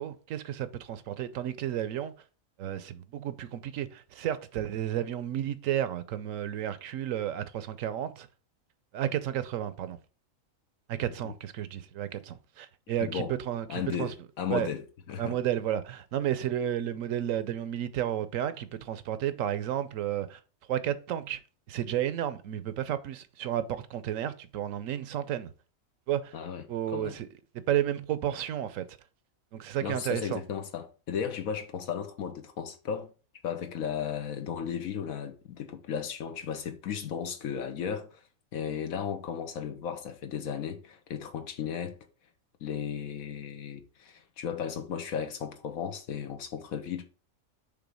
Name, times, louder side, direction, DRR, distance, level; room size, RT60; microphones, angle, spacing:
voice 1, 0.0-2.1 2.6-8.3 8.9-10.0 10.9-14.1 14.5-14.7 15.2-20.4 20.7-21.4 21.7-25.5 26.1-26.3 26.7-27.3 27.7-28.8 29.5-30.4, right 11 dB, 75° right, 1.0 m, -32 dB
voice 2, 13.0-13.3 13.7-15.4 26.3-27.2 29.8-33.1 33.4-38.2 38.5-42.0 42.6-47.1, left 7 dB, 80° left, 1.3 m, -35 dB
6.0 x 3.4 x 4.9 m
omnidirectional pair, 1.4 m